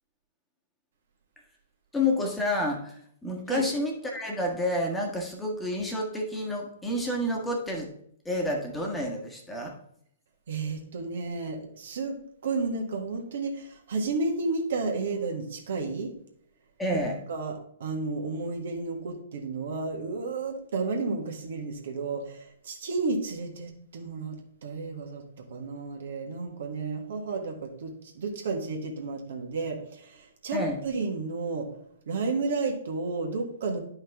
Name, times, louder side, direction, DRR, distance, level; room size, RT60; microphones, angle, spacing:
voice 1, 1.9-7.9 8.2-9.8 16.8-17.2 30.5-30.8, left 1 dB, 10° left, 0 dB, 1.5 m, -29 dB
voice 2, 10.5-16.1 16.9-17.0 17.3-25.2 25.5-31.7 32.1-33.8, right 3 dB, 60° right, 2 dB, 1.6 m, -32 dB
10.5 x 5.4 x 3.6 m, 0.66 s
figure-of-eight pair, 115°, 0 cm